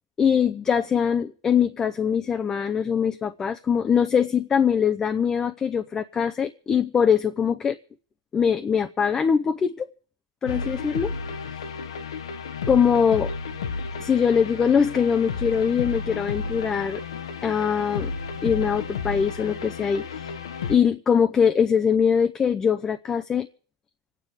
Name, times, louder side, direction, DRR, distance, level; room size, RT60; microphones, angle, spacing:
voice 1, 0.2-7.8 8.3-9.9 10.4-11.1 12.7-13.3 14.0-17.0 17.4-18.1 18.4-20.3 20.7-23.5, left 7 dB, 20° left, 7 dB, 0.7 m, -22 dB
sound 1, 10.5-20.8, left 5 dB, 90° left, 1.4 m, -32 dB
26.5 x 9.2 x 4.9 m, 0.43 s
hypercardioid pair, 125°, 3 cm